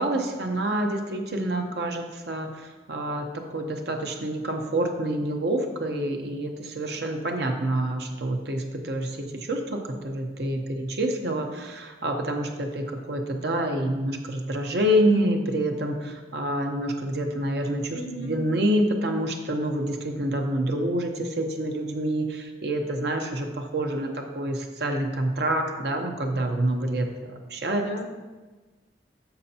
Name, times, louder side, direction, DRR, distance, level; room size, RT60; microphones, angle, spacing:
voice 1, 0.0-27.8, right 1 dB, 65° right, 3 dB, 0.8 m, -27 dB
voice 2, 17.9-18.4 27.7-28.0, right 1 dB, 75° left, 4 dB, 0.8 m, -35 dB
9.7 x 6.7 x 2.8 m, 1.3 s
head